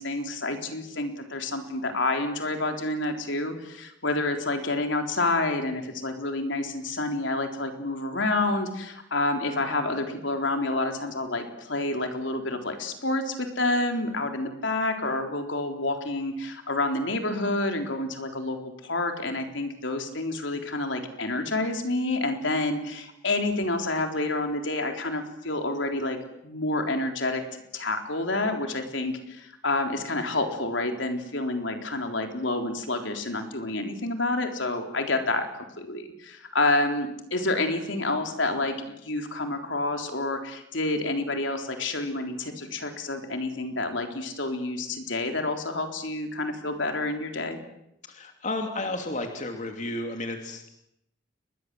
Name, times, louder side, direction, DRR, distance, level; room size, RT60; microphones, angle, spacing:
voice 1, 0.0-26.2 26.4-27.4 27.7-35.5 35.8-47.6, left 2 dB, 70° left, 5 dB, 3.8 m, -28 dB
voice 2, 48.1-50.7, left 2 dB, 40° left, 4 dB, 2.8 m, -32 dB
30.0 x 22.5 x 7.8 m, 0.81 s
head